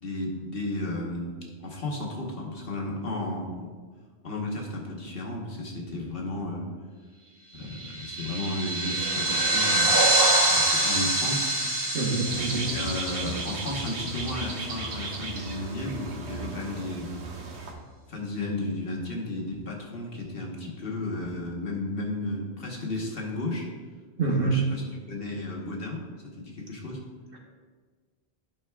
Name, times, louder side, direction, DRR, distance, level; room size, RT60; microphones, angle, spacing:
voice 1, 0.0-1.4 1.6-3.7 4.2-6.7 7.5-11.6 12.5-17.2 18.1-23.7 24.3-26.0 26.4-27.0, left 2 dB, 60° left, -2 dB, 1.3 m, -33 dB
sound 1, 7.7-14.6, right 2 dB, 35° right, 1.7 m, -25 dB
voice 2, 11.9-12.7 24.2-24.6, right 3 dB, 60° right, 0 dB, 1.2 m, -26 dB
sound 2, 12.3-17.7, right 3 dB, 85° right, 1.2 m, -36 dB
11.0 x 5.6 x 2.3 m, 1.5 s
omnidirectional pair, 1.1 m